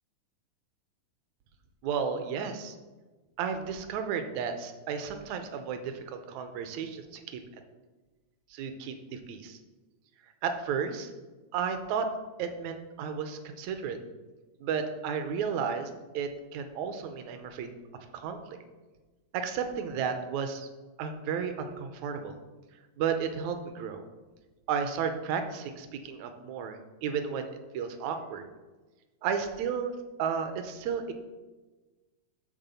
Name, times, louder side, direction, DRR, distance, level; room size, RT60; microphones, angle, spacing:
voice 1, 1.8-2.8 3.4-7.4 8.5-9.6 10.4-11.1 11.5-12.1 12.4-14.0 14.6-17.7 18.1-18.6 19.3-20.7 21.0-22.4 23.0-24.0 24.7-28.5 29.2-29.9 30.2-31.1, right 6 dB, 75° right, 7 dB, 1.8 m, -33 dB
10.0 x 3.6 x 6.9 m, 1.2 s
omnidirectional pair, 3.8 m